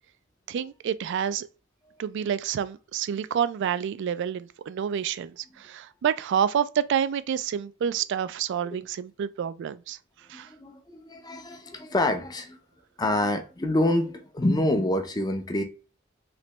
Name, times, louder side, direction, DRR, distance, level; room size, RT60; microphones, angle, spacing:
voice 1, 0.5-1.5 2.0-10.0 10.3-10.5, right 8 dB, 60° right, 0.3 m, -28 dB
voice 2, 10.3-12.6 13.0-15.6, left 1 dB, 20° left, 0.5 m, -26 dB
3.3 x 3.0 x 2.9 m
head